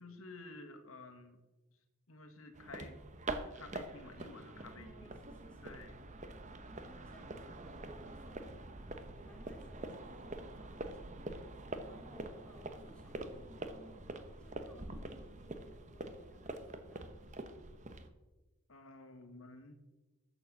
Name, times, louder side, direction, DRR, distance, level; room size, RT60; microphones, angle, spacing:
voice 1, 0.0-1.4 1.7-1.8 2.1-3.0 3.3-5.2 5.6-6.0 18.7-19.7, left 2 dB, 70° left, 5 dB, 1.7 m, -52 dB
sound 1, 2.5-18.1, right 2 dB, 35° right, 1.0 m, -45 dB
voice 2, 4.5-5.9 6.6-14.0 14.4-17.2, equal, 5° left, -2 dB, 3.0 m, -60 dB
14.0 x 7.0 x 6.2 m, 1.1 s
head